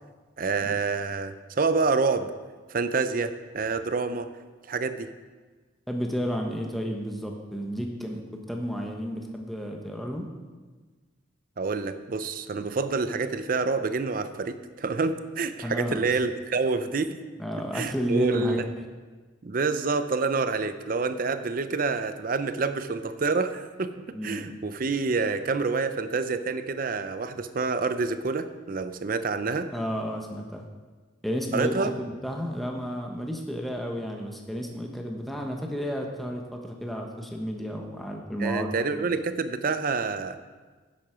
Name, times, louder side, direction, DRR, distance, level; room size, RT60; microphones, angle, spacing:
voice 1, 0.4-2.3 2.7-4.3 4.7-5.1 11.6-17.2 17.7-18.7 19.4-29.7 31.5-31.9 38.4-40.4, right 4 dB, 45° right, 11 dB, 0.5 m, -27 dB
voice 2, 5.9-8.2 8.5-10.3 15.6-16.0 17.4-18.6 24.1-24.4 29.7-30.7 31.2-38.7, equal, ahead, 1 dB, 1.0 m, -32 dB
10.0 x 7.8 x 5.1 m, 1.4 s
head